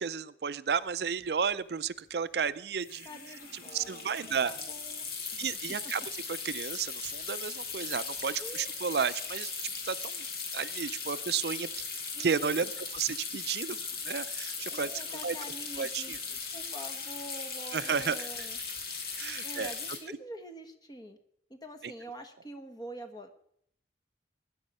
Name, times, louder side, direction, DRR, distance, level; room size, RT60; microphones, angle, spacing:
voice 1, 0.0-3.1 3.7-4.5 5.4-6.0 6.3-10.3 10.5-11.7 12.2-13.8 14.0-15.4 15.8-16.2 17.7-18.5 19.2-19.7 20.1-20.2 21.8-21.9, right 6 dB, 70° right, 15 dB, 0.5 m, -32 dB
sound 1, 0.9-1.0 1.2-1.5 2.8-20.0, left 5 dB, 60° left, 2.4 m, -38 dB
voice 2, 3.0-5.0 5.3-5.9 8.4-8.7 12.1-12.5 14.7-18.6 19.4-21.2 21.5-23.3, right 1 dB, 20° left, 7 dB, 1.4 m, -46 dB
19.5 x 9.8 x 5.5 m, 0.71 s
head